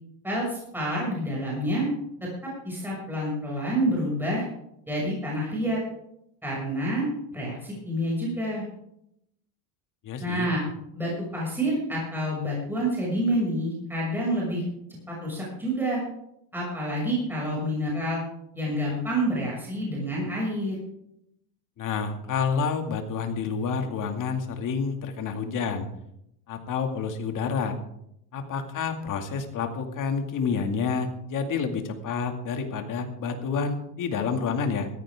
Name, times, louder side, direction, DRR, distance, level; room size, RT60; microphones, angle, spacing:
voice 1, 0.2-1.9 2.2-4.4 4.9-5.8 6.4-8.6 10.2-10.6 10.9-14.6 15.1-16.0 16.5-18.2 18.5-20.7, right 1 dB, 5° right, -5 dB, 6.7 m, -28 dB
voice 2, 10.0-10.5 21.8-25.9 26.5-27.8 28.3-34.9, left 5 dB, 45° left, 5 dB, 2.4 m, -29 dB
16.5 x 14.5 x 3.7 m, 0.78 s
cardioid pair, 130°, 44 cm